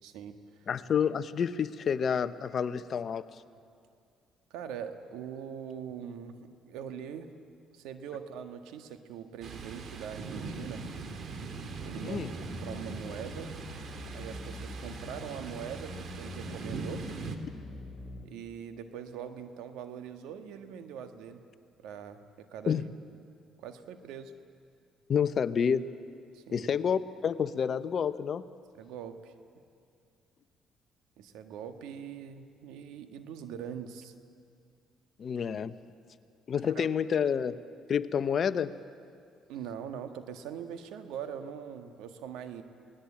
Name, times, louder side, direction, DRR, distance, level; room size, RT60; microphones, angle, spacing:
voice 1, 0.0-0.7 4.5-7.3 7.7-10.8 11.8-13.5 14.1-17.0 18.2-21.4 21.8-22.9 23.6-24.3 26.3-26.7 28.7-29.4 31.2-34.1 36.6-36.9 39.5-42.6, right 8 dB, 85° right, 8 dB, 1.6 m, -42 dB
voice 2, 0.7-3.3 12.0-12.3 22.7-22.8 25.1-25.9 26.5-28.4 35.2-35.7 36.5-37.6 37.9-38.7, left 7 dB, 50° left, 13 dB, 0.9 m, -29 dB
Thunder, 9.4-17.4, right 4 dB, 55° right, 2.3 m, -41 dB
sound 1, 11.8-18.3, left 1 dB, 10° left, 5.7 m, -44 dB
28.0 x 19.0 x 8.7 m, 2.4 s
cardioid pair, 85°, 0 cm